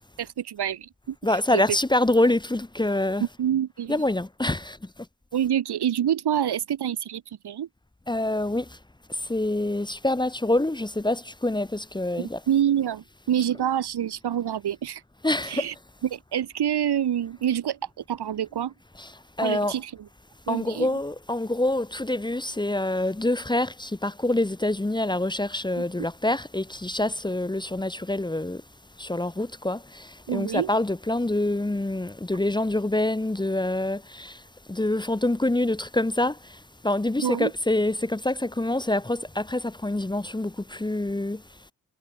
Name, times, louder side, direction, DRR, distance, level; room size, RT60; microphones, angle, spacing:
voice 1, 0.2-1.8 3.2-4.0 5.3-7.7 12.2-15.0 15.4-15.7 16.1-17.8 18.1-18.7 19.4-20.1 20.5-21.0 25.8-25.9 30.3-30.7 37.2-37.5, right 10 dB, 85° right, 6.8 m, -27 dB
voice 2, 1.2-3.3 3.9-4.8 8.1-8.7 9.3-12.4 15.2-15.7 19.0-19.8 20.5-28.6 29.0-34.4 34.7-41.4, left 1 dB, 10° left, 1.9 m, -26 dB
wide cardioid pair, 125°, 38 cm